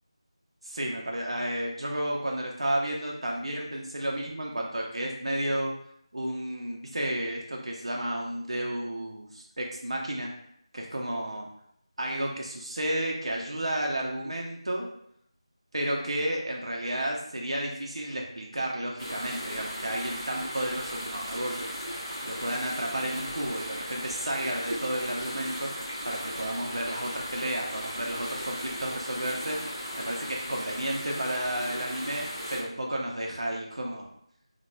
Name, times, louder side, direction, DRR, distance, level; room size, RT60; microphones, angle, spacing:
voice 1, 0.6-5.7 6.1-10.3 10.7-11.5 12.0-14.9 15.7-21.7 22.2-25.7 26.0-29.6 30.0-34.0, right 1 dB, 65° right, -1 dB, 0.5 m, -32 dB
sound 1, 19.0-32.6, equal, 10° left, 0.9 m, -37 dB
4.2 x 2.2 x 2.2 m, 0.70 s
figure-of-eight pair, 165°, 3 cm